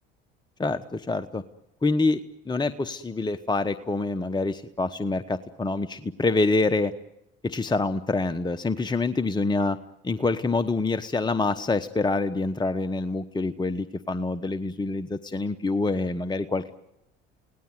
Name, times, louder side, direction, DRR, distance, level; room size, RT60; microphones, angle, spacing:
voice 1, 0.6-1.4 1.8-6.9 7.4-9.8 10.0-16.7, left 3 dB, 15° left, 10 dB, 1.1 m, -26 dB
29.5 x 18.0 x 9.3 m, 0.89 s
hypercardioid pair, 60°, 31 cm